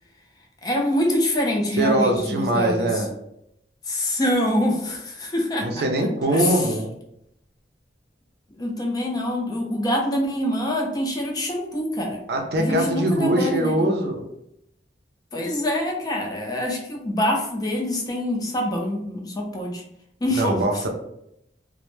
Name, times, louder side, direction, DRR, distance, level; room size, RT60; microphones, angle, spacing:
voice 1, 0.6-3.0 3.9-5.8 6.3-6.7 8.5-12.2 12.6-13.9 15.3-19.8 20.2-20.9, left 1 dB, 20° left, 0 dB, 0.4 m, -25 dB
voice 2, 1.8-3.1 5.6-6.9 12.3-14.2 20.4-20.9, right 1 dB, 60° right, 2 dB, 0.4 m, -22 dB
2.1 x 2.0 x 3.0 m, 0.78 s
head